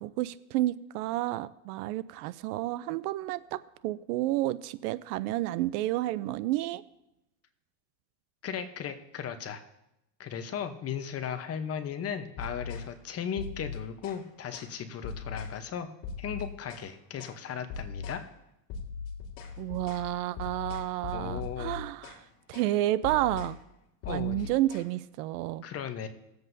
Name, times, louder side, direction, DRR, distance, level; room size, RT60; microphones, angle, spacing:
voice 1, 0.0-6.8 19.6-22.2 22.5-23.6 24.1-25.6, right 15 dB, 70° right, 16 dB, 0.6 m, -30 dB
voice 2, 8.4-9.6 10.2-15.9 16.2-18.2 21.1-21.7 24.0-24.4 25.6-26.1, left 8 dB, 30° left, 8 dB, 0.9 m, -36 dB
sound 1, 12.4-12.9 13.4-14.2 14.5-14.7 15.0-15.6 16.0-16.9 17.2-17.4 17.7-18.2 18.7-22.2 22.5-22.7 23.0-23.6 24.0-24.8, left 5 dB, 50° left, 2.2 m, -39 dB
18.5 x 7.9 x 2.7 m, 0.88 s
supercardioid pair, 130°, 49 cm